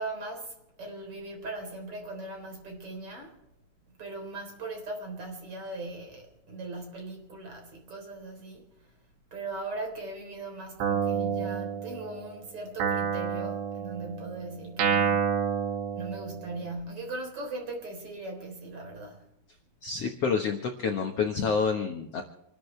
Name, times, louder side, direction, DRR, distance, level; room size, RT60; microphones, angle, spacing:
voice 1, 0.0-3.4 4.0-8.7 9.3-15.4 15.9-19.3, right 2 dB, 35° right, 4.4 m, -39 dB
Guitar, 10.8-12.3 12.8-16.7, right 7 dB, 85° right, 4.3 m, -29 dB
voice 2, 19.8-22.2, left 5 dB, 80° left, 1.4 m, -28 dB
28.0 x 13.0 x 3.3 m
omnidirectional pair, 4.8 m